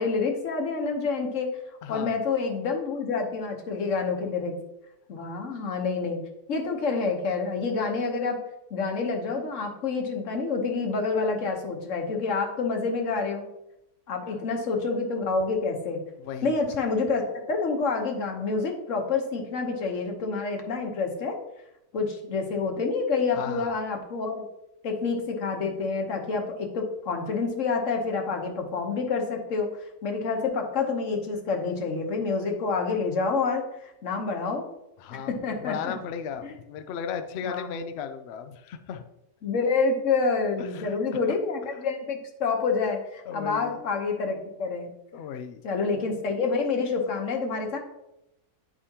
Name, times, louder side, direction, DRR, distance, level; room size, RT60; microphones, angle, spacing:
voice 1, 0.0-1.5 1.9-4.5 5.1-6.2 6.5-8.4 8.7-13.4 14.1-16.0 16.4-21.4 21.9-24.5 24.8-29.7 30.0-34.6 35.3-35.9 36.4-36.5 37.4-37.8 39.4-44.9 45.6-47.8, left 4 dB, 55° left, 3 dB, 1.3 m, -28 dB
voice 2, 1.8-2.2 16.2-16.6 23.3-23.7 35.0-39.0 40.6-41.0 43.3-43.8 45.1-45.6, left 7 dB, 80° left, 9 dB, 0.5 m, -36 dB
9.7 x 5.0 x 2.8 m, 0.88 s
omnidirectional pair, 1.7 m